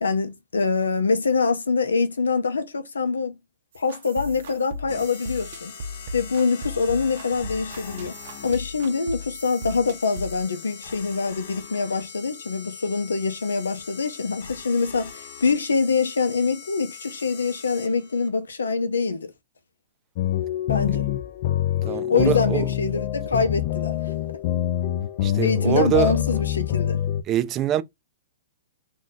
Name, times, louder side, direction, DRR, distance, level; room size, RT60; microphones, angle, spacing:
voice 1, 0.0-3.3 3.7-5.7 6.1-8.2 8.4-19.3 20.7-21.1 22.1-23.9 25.4-27.0, left 4 dB, 90° left, 0.6 m, -24 dB
sound 1, 3.7-10.4, left 1 dB, 60° right, 0.7 m, -37 dB
sound 2, 4.9-18.3, left 5 dB, 65° left, 0.9 m, -41 dB
sound 3, 20.2-27.2, left 12 dB, 50° left, 0.4 m, -25 dB
voice 2, 21.8-22.7 25.2-26.2 27.3-27.8, right 11 dB, 30° right, 0.4 m, -24 dB
2.6 x 2.3 x 3.8 m
hypercardioid pair, 125°, 0 cm